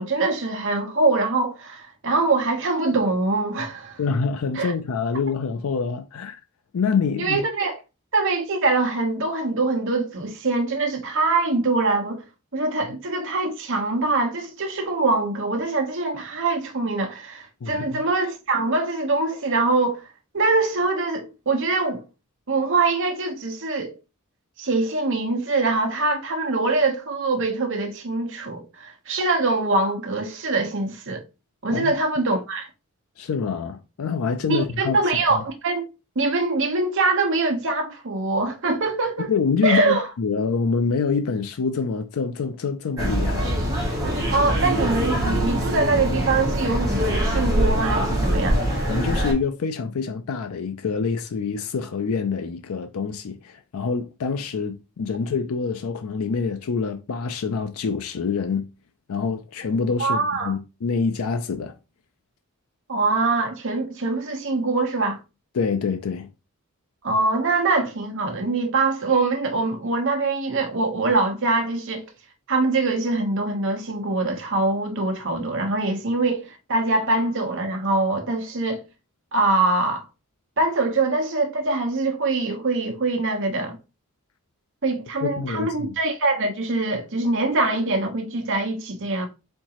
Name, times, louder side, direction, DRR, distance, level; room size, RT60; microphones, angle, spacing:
voice 1, 0.0-4.0 4.5-4.7 7.2-7.8 8.1-12.2 12.5-20.0 20.3-22.0 22.5-23.9 24.6-31.2 31.6-32.7 34.5-35.9 36.1-39.3 39.6-40.1 44.3-48.7 60.0-60.6 62.9-65.2 67.0-72.0 72.5-78.8 79.3-80.0 80.6-83.8 84.8-89.3, right 3 dB, 60° right, 1.1 m, -23 dB
voice 2, 4.0-6.4 6.7-7.4 17.6-18.0 31.7-31.9 33.2-35.0 35.3-35.4 39.3-43.6 48.9-58.7 59.1-61.8 65.5-66.3 85.2-85.9, left 5 dB, 75° left, 0.4 m, -26 dB
sound 1, 43.0-49.3, equal, 15° right, 1.7 m, -23 dB
4.5 x 3.7 x 2.9 m
head